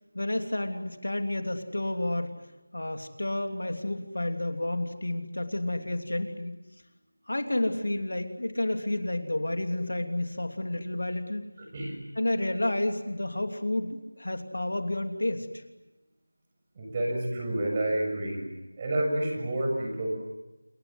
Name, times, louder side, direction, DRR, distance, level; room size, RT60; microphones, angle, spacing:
voice 1, 0.1-2.4 2.7-6.6 7.3-11.4 12.2-15.6, left 1 dB, 70° left, 6 dB, 3.0 m, -30 dB
voice 2, 16.7-18.4 18.8-20.1, right 1 dB, 25° right, 1 dB, 6.8 m, -29 dB
28.0 x 23.5 x 8.0 m, 1.0 s
figure-of-eight pair, 170°, 0 cm